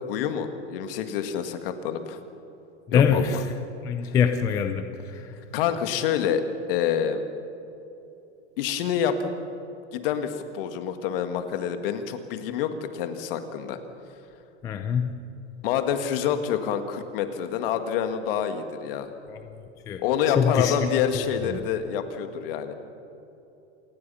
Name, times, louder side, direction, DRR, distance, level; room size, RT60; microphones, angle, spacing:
voice 1, 0.1-2.2 2.9-3.4 5.5-6.4 6.7-7.2 8.6-9.3 9.9-13.8 15.6-19.1 20.0-22.7, left 8 dB, 50° left, 8 dB, 1.9 m, -27 dB
voice 2, 2.9-3.4 3.9-4.8 14.6-15.1 19.3-19.4 19.9-20.0 20.4-21.0, left 7 dB, 10° left, 7 dB, 0.4 m, -23 dB
27.5 x 19.0 x 5.6 m, 3.0 s
supercardioid pair, 160°, 35 cm